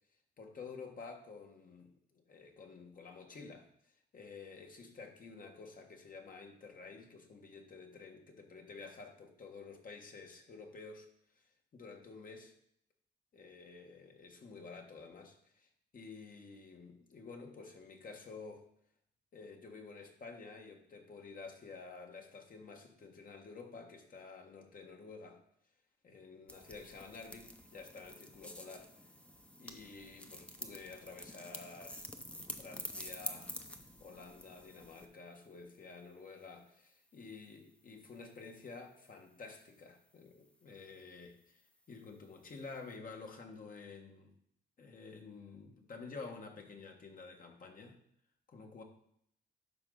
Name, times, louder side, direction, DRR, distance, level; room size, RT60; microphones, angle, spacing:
voice 1, 0.4-3.7 4.1-11.1 11.4-11.5 11.7-12.5 13.3-18.7 19.3-25.4 26.0-28.9 29.6-32.1 32.5-33.5 34.0-41.6 41.9-44.3 44.8-48.0 48.5-48.8, left 4 dB, 45° left, 3 dB, 1.5 m, -51 dB
sound 1, 26.5-35.1, left 1 dB, 5° left, 0.8 m, -48 dB
11.5 x 4.6 x 3.9 m, 0.69 s
cardioid pair, 90°, 20 cm